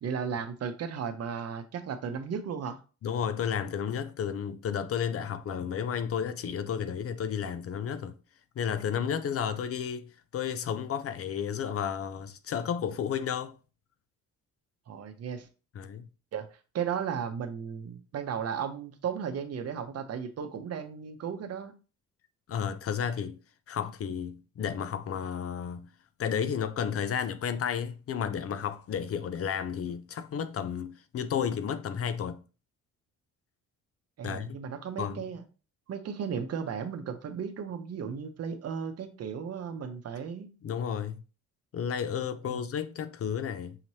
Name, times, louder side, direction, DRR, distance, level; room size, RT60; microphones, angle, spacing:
voice 1, 0.0-2.8 14.9-15.5 16.3-16.5 16.7-21.7 34.2-35.4 35.9-40.5 42.4-42.6, right 7 dB, 55° right, 0.8 m, -35 dB
voice 2, 3.0-8.1 8.6-10.0 10.3-13.5 15.7-16.0 22.5-23.4 23.7-25.9 26.2-32.4 34.2-34.6 35.0-35.2 40.6-41.2 41.7-43.8, left 8 dB, 50° left, 0.5 m, -32 dB
5.7 x 3.0 x 2.8 m
cardioid pair, 90°, 30 cm